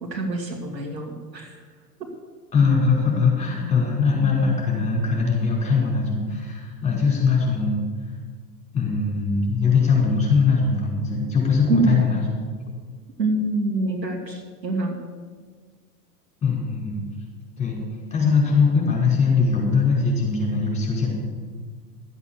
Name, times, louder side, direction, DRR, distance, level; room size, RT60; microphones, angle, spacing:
voice 1, 0.0-1.6 11.7-11.9 13.2-14.9, right 2 dB, 80° right, 1 dB, 2.7 m, -25 dB
voice 2, 2.5-8.1 8.7-12.3 16.4-17.0 17.6-17.8 18.1-21.1, left 4 dB, 15° left, -2 dB, 5.2 m, -21 dB
13.5 x 8.3 x 7.3 m, 1.5 s
figure-of-eight pair, 95°, 50 cm